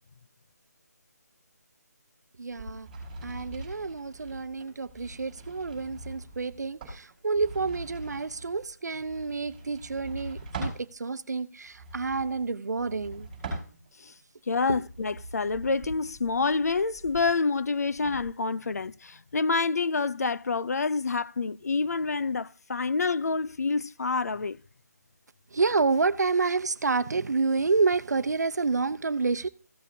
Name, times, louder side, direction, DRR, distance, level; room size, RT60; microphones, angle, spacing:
voice 1, 2.4-2.9 3.2-13.3 14.7-14.8 25.5-29.5, right 4 dB, 75° right, 0.7 m, -29 dB
sound 1, 2.5-10.9 11.7-14.1 14.6-18.2, right 2 dB, 10° right, 4.4 m, -42 dB
voice 2, 14.5-24.6, left 4 dB, 65° left, 0.5 m, -27 dB
15.0 x 7.3 x 2.7 m
figure-of-eight pair, 175°, 9 cm